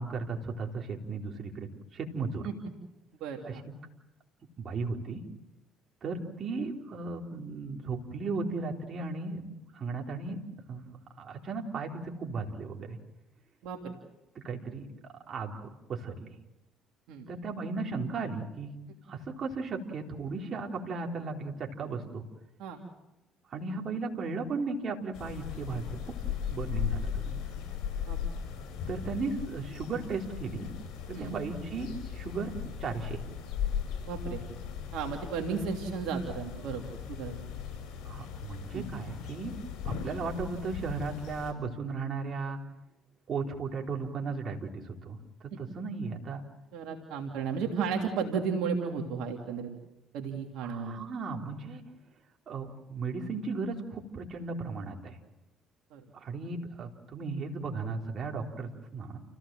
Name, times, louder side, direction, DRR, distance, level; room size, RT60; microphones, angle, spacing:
voice 1, 0.0-2.5 3.4-3.6 4.6-5.2 6.0-10.4 10.7-13.0 14.4-14.9 15.3-16.3 17.3-18.7 19.1-22.3 23.5-26.1 26.5-27.4 28.9-30.7 31.1-32.5 32.8-33.2 38.0-39.5 39.8-42.6 43.3-46.4 50.6-51.8 52.5-55.2 56.1-59.2, right 4 dB, 50° right, 1 dB, 4.0 m, -36 dB
voice 2, 3.2-3.6 13.6-13.9 17.1-17.3 22.6-22.8 28.1-28.2 31.1-31.3 34.0-34.4 34.9-37.4 38.7-38.9 45.5-45.6 46.7-49.7 50.1-50.9 55.9-56.0, right 6 dB, 75° right, 2 dB, 2.9 m, -34 dB
sound 1, 25.1-41.5, left 8 dB, 65° left, 6.6 m, -38 dB
29.5 x 16.5 x 7.7 m, 0.93 s
supercardioid pair, 65°, 0 cm